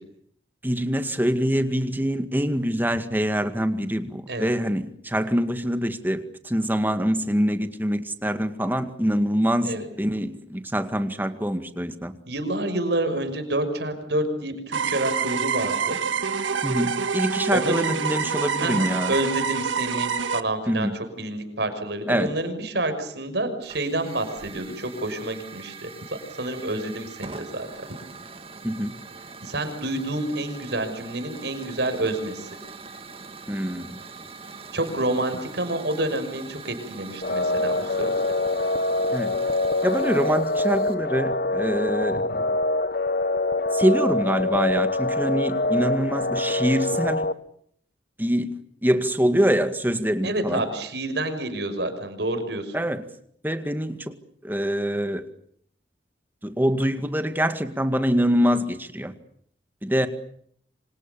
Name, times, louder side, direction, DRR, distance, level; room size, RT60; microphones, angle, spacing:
voice 1, 0.6-12.1 16.6-19.1 20.7-21.0 22.1-22.3 28.6-28.9 33.5-34.0 39.1-39.3 39.8-42.3 43.7-47.3 48.2-48.5 48.8-50.6 52.7-53.0 53.4-54.1 54.4-55.2 56.4-59.1 59.8-60.1, equal, 10° right, 9 dB, 2.0 m, -24 dB
voice 2, 12.3-16.0 17.5-17.9 18.6-20.9 21.2-25.9 26.3-27.7 29.4-32.5 34.7-38.2 42.1-42.2 50.2-52.8, right 1 dB, 60° right, 8 dB, 6.1 m, -28 dB
sound 1, 14.7-20.4, right 6 dB, 85° right, 1.5 m, -26 dB
Hiss / Fire, 23.6-40.9, right 4 dB, 30° right, 2.5 m, -43 dB
sound 2, 37.2-47.3, left 2 dB, 50° left, 1.1 m, -25 dB
28.0 x 26.5 x 7.1 m, 0.65 s
head